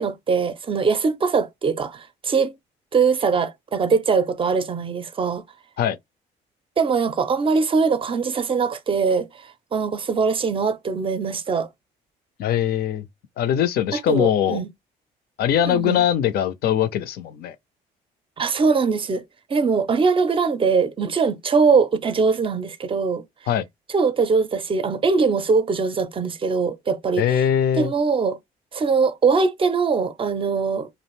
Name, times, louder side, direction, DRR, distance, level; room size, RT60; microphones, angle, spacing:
voice 1, 0.0-2.5 2.9-5.4 6.8-11.7 13.9-14.7 15.7-16.0 18.4-19.2 19.5-23.2 23.9-27.4 27.7-28.4 28.7-30.9, right 5 dB, 30° right, 0.5 m, -22 dB
voice 2, 12.4-13.1 13.4-14.6 15.4-17.6 23.5-23.6 27.2-27.9, left 9 dB, 60° left, 0.5 m, -21 dB
2.4 x 2.0 x 3.0 m
supercardioid pair, 70°, 18 cm